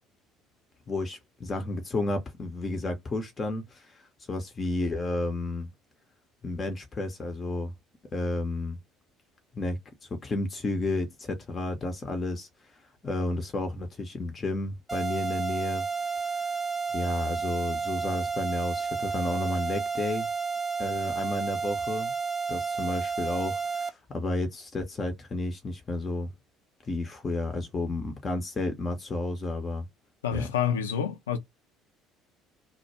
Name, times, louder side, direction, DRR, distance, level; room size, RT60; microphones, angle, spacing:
voice 1, 0.9-5.7 6.4-7.7 8.1-8.8 9.5-9.8 10.1-12.5 13.0-15.8 16.9-20.3 20.8-22.1 22.5-26.3 26.8-29.9 30.3-30.5, left 2 dB, 30° left, 0.6 m, -32 dB
sound 1, 14.9-23.9, right 5 dB, 10° right, 0.5 m, -31 dB
voice 2, 30.2-31.4, left 8 dB, 75° left, 0.5 m, -28 dB
2.2 x 2.1 x 2.8 m
figure-of-eight pair, 55°, 0 cm